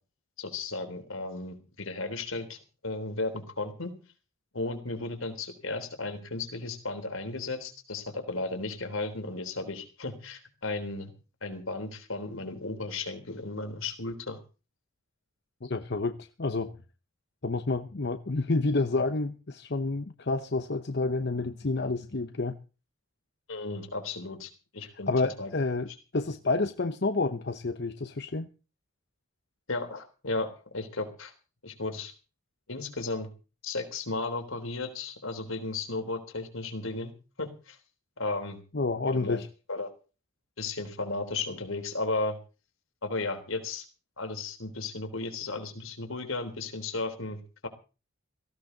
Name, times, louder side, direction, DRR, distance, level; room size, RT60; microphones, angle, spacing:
voice 1, 0.4-2.6 2.8-3.9 4.5-11.1 11.4-14.4 23.5-25.1 25.4-25.5 29.7-30.5 30.7-31.3 31.6-32.1 32.7-33.3 33.6-37.1 37.4-37.8 38.2-38.6 39.1-39.4 39.7-39.9 40.6-42.4 43.0-43.8 44.2-47.7, left 3 dB, 75° left, 3.5 m, -34 dB
voice 2, 15.6-16.7 17.4-22.6 24.8-28.5 38.7-39.5, left 3 dB, 50° left, 0.8 m, -29 dB
18.0 x 16.0 x 4.0 m
head